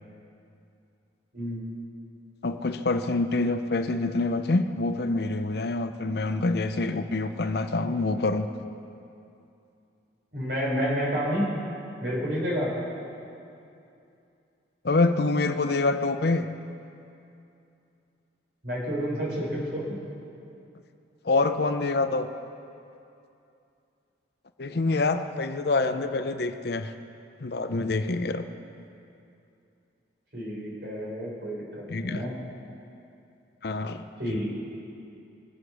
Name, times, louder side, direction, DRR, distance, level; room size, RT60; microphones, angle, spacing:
voice 1, 2.4-8.5 14.8-16.5 21.2-22.3 24.6-26.9 27.4-28.4 31.9-32.2 33.6-34.0, left 3 dB, 55° left, 9 dB, 0.6 m, -26 dB
voice 2, 10.3-11.5 12.0-12.7 18.6-20.0 30.3-32.3 34.2-34.6, equal, 55° right, -4 dB, 4.4 m, -29 dB
23.0 x 8.0 x 6.3 m, 2.6 s
head